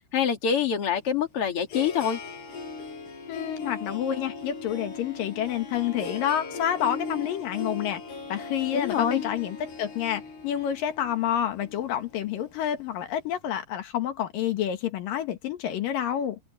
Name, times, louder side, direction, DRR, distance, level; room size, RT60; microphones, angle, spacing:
voice 1, 0.1-2.2 8.7-9.2, left 8 dB, 40° left, 2.5 m, -25 dB
Harp, 1.0-13.2, left 4 dB, 90° left, 9.6 m, -39 dB
voice 2, 3.3-8.0 8.3-16.4, left 10 dB, 65° left, 2.9 m, -29 dB
omnidirectional pair, 4.6 m